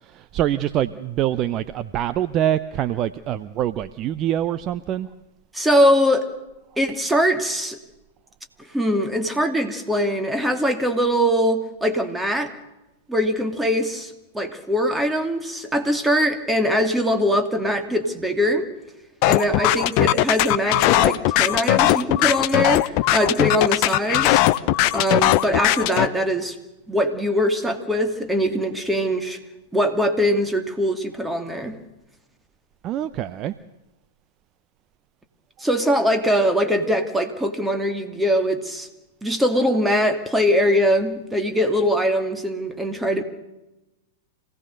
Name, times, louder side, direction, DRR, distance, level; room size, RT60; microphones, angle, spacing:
voice 1, 0.0-5.1 32.8-33.5, right 11 dB, 35° right, 13 dB, 0.7 m, -25 dB
voice 2, 5.5-6.3 6.8-7.8 8.7-12.5 13.1-18.7 19.3-24.4 24.9-26.6 26.9-29.4 29.7-31.8 35.6-38.9 39.2-43.2, equal, 5° right, 6 dB, 2.5 m, -22 dB
sound 1, 19.2-26.1, left 15 dB, 45° left, 0.8 m, -19 dB
26.5 x 17.5 x 6.6 m, 0.99 s
figure-of-eight pair, 100°, 0 cm